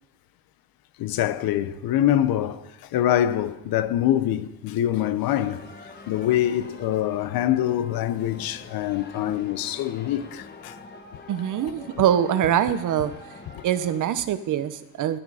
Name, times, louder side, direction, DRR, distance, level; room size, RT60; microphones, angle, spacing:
voice 1, 1.0-2.6 2.9-5.6 6.1-10.8 13.6-13.7, left 12 dB, 75° left, 0.7 m, -24 dB
sound 1, 5.3-14.0, left 3 dB, 30° left, 1.1 m, -45 dB
voice 2, 11.3-13.1 13.6-15.2, right 10 dB, 55° right, 0.8 m, -23 dB
13.0 x 9.9 x 4.9 m
cardioid pair, 155°, 36 cm